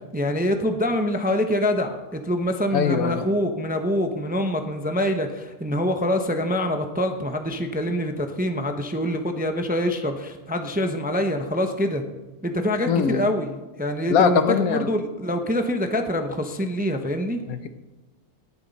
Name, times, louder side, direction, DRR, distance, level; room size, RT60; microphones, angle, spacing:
voice 1, 0.1-12.0 12.4-17.4, equal, 10° right, 5 dB, 0.6 m, -25 dB
voice 2, 2.7-3.2 12.9-13.3 14.1-14.9 17.5-17.7, left 8 dB, 75° left, 10 dB, 1.2 m, -21 dB
19.0 x 7.2 x 4.1 m, 1.1 s
omnidirectional pair, 1.5 m